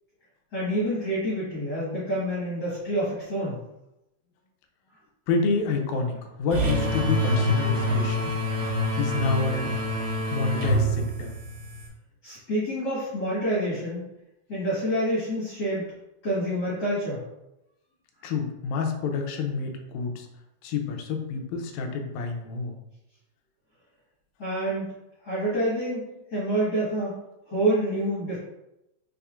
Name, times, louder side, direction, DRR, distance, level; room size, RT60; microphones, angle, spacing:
voice 1, 0.5-3.6 12.2-14.0 14.5-15.9 16.2-17.2 24.4-24.9 25.2-27.2 27.5-28.4, right 1 dB, 45° left, -9 dB, 1.4 m, -27 dB
voice 2, 5.3-8.3 9.0-9.7 10.3-11.3 18.2-20.3 20.6-22.7, left 4 dB, 80° left, 3 dB, 1.8 m, -28 dB
sound 1, 6.5-11.9, equal, 75° right, 1.2 m, -26 dB
5.6 x 3.5 x 2.4 m, 0.89 s
omnidirectional pair, 3.8 m